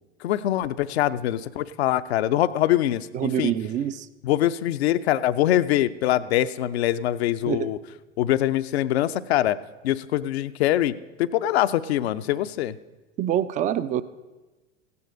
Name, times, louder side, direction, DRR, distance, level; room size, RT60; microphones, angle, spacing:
voice 1, 0.2-3.5 4.2-7.8 8.2-9.6 9.8-12.8, left 13 dB, 60° left, 13 dB, 0.6 m, -23 dB
voice 2, 3.1-4.1 7.5-7.7 13.2-14.0, right 10 dB, 20° right, 15 dB, 0.4 m, -25 dB
16.0 x 9.7 x 5.1 m, 1.2 s
figure-of-eight pair, 80°, 37 cm